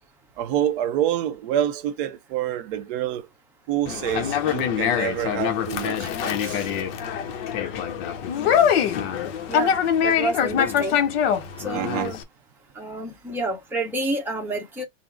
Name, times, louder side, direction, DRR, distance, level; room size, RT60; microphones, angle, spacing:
voice 1, 0.4-3.3 3.7-6.7 11.7-12.1, right 11 dB, 45° right, 0.6 m, -27 dB
Conversation, 3.9-12.2, left 8 dB, 50° left, 0.8 m, -24 dB
voice 2, 9.5-9.8 10.0-11.0 11.6-12.2 12.7-14.8, right 2 dB, 5° right, 0.8 m, -29 dB
3.8 x 2.0 x 4.4 m
supercardioid pair, 160°, 37 cm